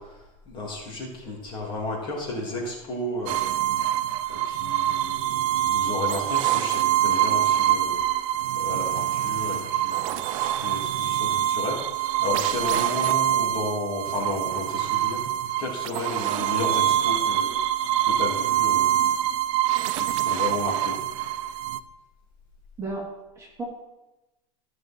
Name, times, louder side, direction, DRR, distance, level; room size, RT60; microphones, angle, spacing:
voice 1, 0.0-3.8 4.1-15.2 15.6-17.6 18.0-19.3 20.0-21.0, left 2 dB, 25° left, -2 dB, 2.9 m, -33 dB
sound 1, 3.3-21.8, right 12 dB, 60° right, 0.6 m, -25 dB
voice 2, 22.8-23.6, right 2 dB, 15° right, -3 dB, 2.3 m, -34 dB
14.5 x 6.4 x 4.5 m, 1.0 s
supercardioid pair, 155°, 18 cm